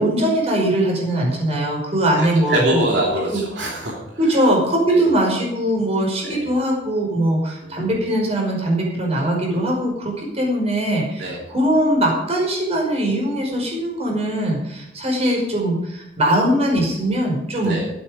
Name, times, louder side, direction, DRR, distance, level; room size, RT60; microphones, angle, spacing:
voice 1, 0.0-2.8 3.3-3.4 4.2-17.8, right 1 dB, 35° right, -1 dB, 5.4 m, -21 dB
voice 2, 2.1-3.9 4.2-4.4 4.9-5.0 6.2-6.5 7.6-7.9 11.2-11.4 17.6-17.9, right 1 dB, 70° right, -3 dB, 3.2 m, -24 dB
13.0 x 12.0 x 5.2 m, 0.83 s
head